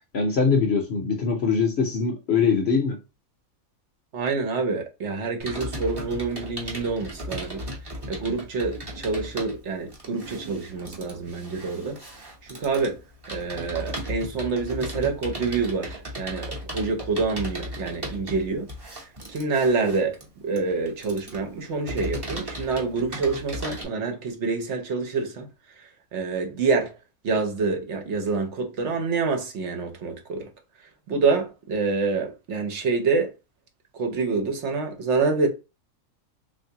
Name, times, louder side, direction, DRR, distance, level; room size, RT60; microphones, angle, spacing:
voice 1, 0.1-3.0, left 5 dB, 60° left, 0.8 m, -22 dB
voice 2, 4.1-7.6 8.1-12.0 12.4-13.0 13.3-18.7 19.3-20.2 20.4-25.5 25.8-27.0 27.2-30.5 31.1-33.3 33.9-35.5, right 4 dB, 60° right, 1.0 m, -27 dB
Computer keyboard, 5.4-23.9, equal, 20° right, 0.7 m, -36 dB
3.4 x 2.6 x 2.7 m
omnidirectional pair, 1.4 m